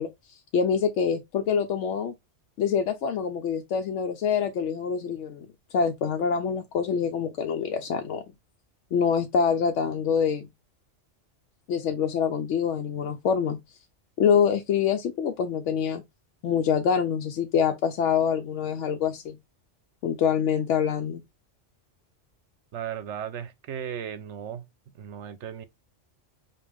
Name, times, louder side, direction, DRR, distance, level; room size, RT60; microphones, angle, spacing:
voice 1, 0.0-2.1 2.6-5.5 5.7-8.2 8.9-10.5 11.7-13.6 14.2-16.0 16.4-19.4 20.0-21.2, left 7 dB, 80° left, 0.9 m, -25 dB
voice 2, 22.7-24.7 24.9-25.7, right 9 dB, 75° right, 0.9 m, -36 dB
5.2 x 2.5 x 3.4 m
omnidirectional pair, 1.2 m